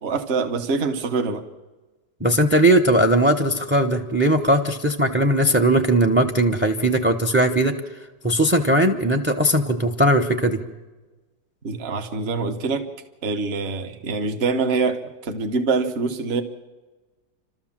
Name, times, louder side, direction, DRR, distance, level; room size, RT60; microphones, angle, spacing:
voice 1, 0.0-1.4 11.6-12.9 13.2-16.4, right 4 dB, 40° right, 1.3 m, -24 dB
voice 2, 2.2-7.8 8.2-10.6, right 1 dB, 10° right, 0.6 m, -19 dB
29.5 x 13.0 x 7.3 m
omnidirectional pair, 1.8 m